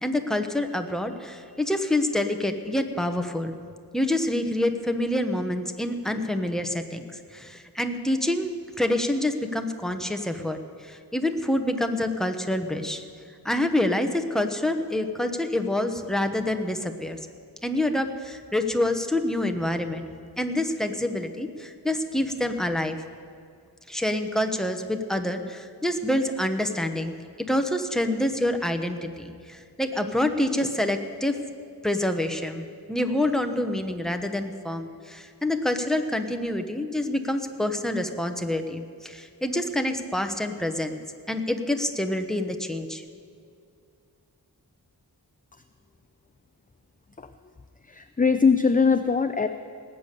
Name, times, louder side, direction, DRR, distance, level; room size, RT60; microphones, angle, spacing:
voice 1, 0.0-3.5 3.9-13.0 13.4-17.2 17.6-20.1 20.4-23.0 23.9-27.2 27.5-31.4 31.8-41.0 41.3-43.0, left 1 dB, ahead, 6 dB, 1.1 m, -27 dB
voice 2, 47.8-49.5, left 5 dB, 20° left, 9 dB, 0.5 m, -22 dB
19.0 x 8.5 x 6.8 m, 2.4 s
wide cardioid pair, 55°, 40 cm